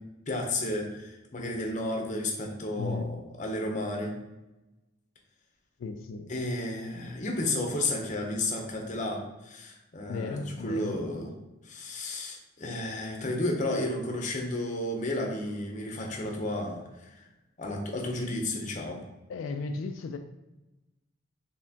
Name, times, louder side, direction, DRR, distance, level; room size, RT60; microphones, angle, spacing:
voice 1, 0.3-4.1 6.3-11.3 11.6-17.2 17.6-19.0, left 1 dB, 40° left, 1 dB, 0.7 m, -32 dB
voice 2, 5.8-6.3 10.1-11.0 19.3-20.2, left 4 dB, 90° left, 6 dB, 0.3 m, -35 dB
4.2 x 3.5 x 2.8 m, 1.0 s
head